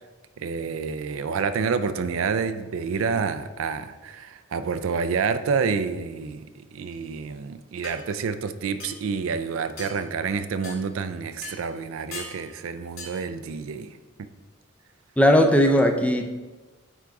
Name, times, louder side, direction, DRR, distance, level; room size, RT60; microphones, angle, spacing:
voice 1, 0.4-13.9, right 5 dB, 70° right, 12 dB, 0.4 m, -28 dB
sound 1, 7.2-7.3 7.8-8.0 8.8-9.1 9.8-10.0 10.6-10.8 11.4-11.6 12.1-12.4 13.0-13.2, left 3 dB, 80° left, 1.9 m, -38 dB
voice 2, 15.2-16.3, equal, 5° left, 5 dB, 0.4 m, -18 dB
9.3 x 3.9 x 3.5 m, 1.2 s
head